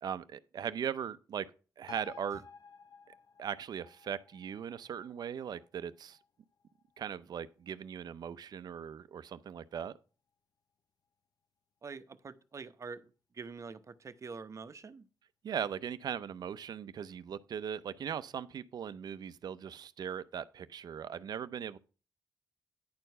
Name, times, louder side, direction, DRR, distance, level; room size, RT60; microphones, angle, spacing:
voice 1, 0.0-1.5 1.8-2.4 3.4-6.2 7.0-9.9 15.4-21.8, right 8 dB, 70° right, 0.6 m, -39 dB
sound 1, 1.9-8.8 9.2-9.3, left 5 dB, 65° left, 0.7 m, -55 dB
voice 2, 11.8-15.0, right 5 dB, 45° right, 0.9 m, -46 dB
10.5 x 4.6 x 5.4 m
cardioid pair, 80°, 7 cm